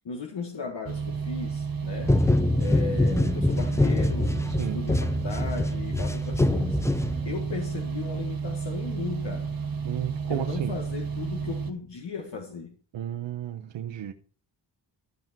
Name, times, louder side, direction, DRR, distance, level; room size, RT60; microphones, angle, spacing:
voice 1, 0.1-2.2 2.6-9.5 10.3-12.7, left 5 dB, 75° left, 1.7 m, -36 dB
sound 1, 0.9-11.7, right 6 dB, 55° right, 1.4 m, -32 dB
sound 2, 2.0-7.6, left 2 dB, 5° left, 0.5 m, -25 dB
voice 2, 4.5-4.8 9.8-10.8 12.9-14.1, right 10 dB, 85° right, 0.9 m, -33 dB
13.5 x 5.8 x 4.5 m
cardioid pair, 75°, 43 cm